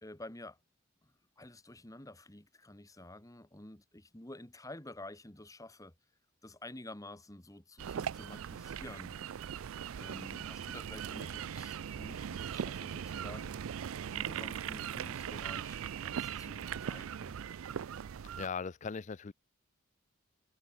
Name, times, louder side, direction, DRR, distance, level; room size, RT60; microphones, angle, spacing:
voice 1, 0.0-0.6 1.0-1.1 1.4-5.9 6.4-9.4 9.9-13.6 14.1-17.4, left 1 dB, 15° left, 1.5 m, -50 dB
sound 1, 7.8-18.5, right 8 dB, 75° right, 0.4 m, -40 dB
voice 2, 18.4-19.3, left 5 dB, 35° left, 0.4 m, -38 dB
head